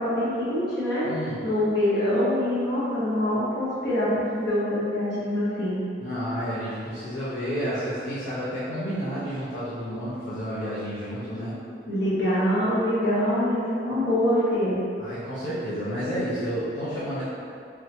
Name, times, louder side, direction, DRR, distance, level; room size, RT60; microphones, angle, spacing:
voice 1, 0.0-1.1 1.4-5.8 11.9-14.8, left 1 dB, 65° left, -10 dB, 1.4 m, -24 dB
voice 2, 1.0-1.4 6.0-11.6 15.0-17.3, equal, 85° left, -12 dB, 0.8 m, -30 dB
3.6 x 3.3 x 2.9 m, 2.5 s
head